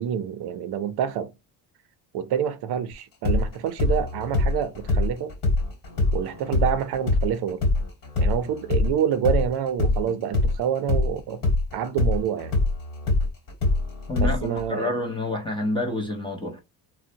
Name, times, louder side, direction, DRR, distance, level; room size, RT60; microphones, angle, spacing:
voice 1, 0.0-1.3 2.1-5.3 6.1-7.6 8.2-11.4 11.7-12.5 14.2-14.9, right 9 dB, 60° right, 0.6 m, -27 dB
sound 1, 3.2-11.1 11.4-14.7, left 2 dB, 45° left, 1.3 m, -23 dB
voice 2, 14.1-16.6, left 2 dB, 10° left, 0.5 m, -28 dB
3.8 x 2.1 x 2.6 m
cardioid pair, 175°, 45 cm